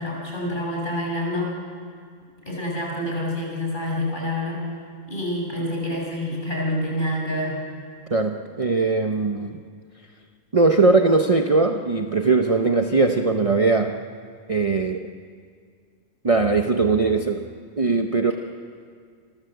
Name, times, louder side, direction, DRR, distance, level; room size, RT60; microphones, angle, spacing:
voice 1, 0.0-1.5 2.5-4.6 5.1-7.6, left 1 dB, 35° left, -2 dB, 7.1 m, -27 dB
voice 2, 8.1-9.6 10.5-14.0 14.5-15.1 16.2-17.5 17.8-18.3, right 3 dB, 30° right, 4 dB, 0.9 m, -20 dB
29.0 x 23.5 x 8.1 m, 2.1 s
omnidirectional pair, 1.4 m